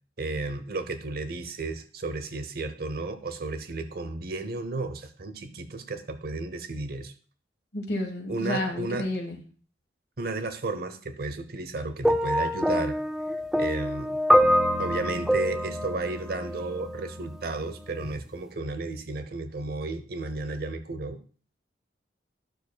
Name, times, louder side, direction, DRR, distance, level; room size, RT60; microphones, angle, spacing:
voice 1, 0.2-7.1 8.3-9.1 10.2-13.0 13.3-14.2 14.8-21.2, right 2 dB, 55° right, 10 dB, 0.8 m, -33 dB
voice 2, 7.7-9.4, left 1 dB, 60° left, 4 dB, 1.5 m, -30 dB
sound 1, 12.0-17.2 18.1-18.2, equal, 5° right, 0.3 m, -25 dB
Bass guitar, 14.4-18.8, equal, 75° right, 1.9 m, -41 dB
12.0 x 6.7 x 2.3 m, 0.42 s
head